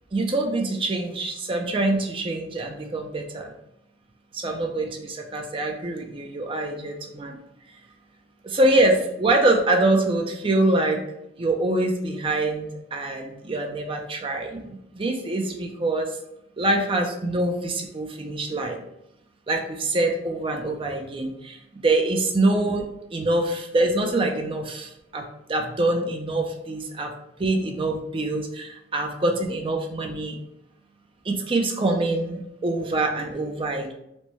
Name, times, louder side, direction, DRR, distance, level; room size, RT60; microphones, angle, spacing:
voice 1, 0.1-3.5 4.3-7.4 8.4-11.0 11.4-16.2 16.6-18.8 19.5-22.8 23.1-27.1 27.4-30.4 31.2-33.9, right 2 dB, 30° right, 2 dB, 0.5 m, -25 dB
4.4 x 2.1 x 4.3 m, 0.80 s
head